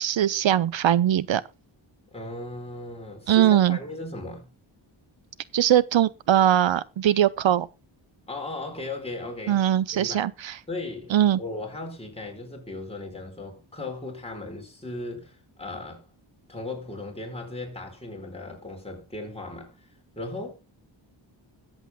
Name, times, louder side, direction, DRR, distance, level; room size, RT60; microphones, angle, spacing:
voice 1, 0.0-1.4 3.3-3.8 5.5-7.7 9.5-10.6 11.1-11.4, right 11 dB, 75° right, 0.7 m, -21 dB
voice 2, 2.1-4.5 8.3-9.6 9.9-10.3 10.7-16.1 16.5-19.9 20.1-20.5, left 2 dB, 15° left, 4.4 m, -37 dB
22.0 x 8.1 x 2.2 m
wide cardioid pair, 175°, 46 cm